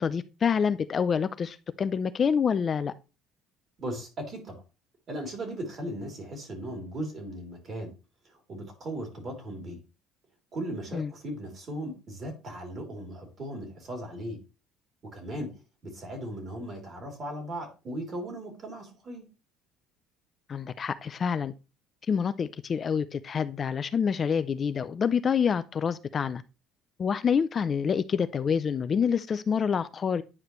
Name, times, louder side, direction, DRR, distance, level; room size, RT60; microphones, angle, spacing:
voice 1, 0.0-2.9 10.9-11.1 20.5-21.5 22.1-26.4 27.0-30.2, left 6 dB, 35° left, 0.4 m, -27 dB
voice 2, 3.8-4.6 5.1-7.9 8.2-9.8 10.5-14.4 15.1-15.5 15.8-19.2, right 1 dB, 40° right, 3.1 m, -37 dB
9.6 x 4.9 x 3.1 m
cardioid pair, 110°, 0 cm